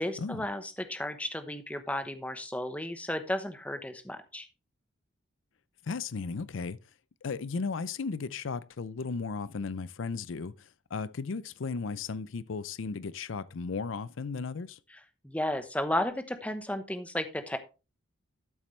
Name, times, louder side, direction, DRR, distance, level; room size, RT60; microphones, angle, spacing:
voice 1, 0.0-4.5 15.2-17.6, left 1 dB, 5° left, 0.9 m, -33 dB
voice 2, 5.9-6.8 7.2-14.8, left 4 dB, 80° left, 0.5 m, -35 dB
12.5 x 7.4 x 3.3 m
head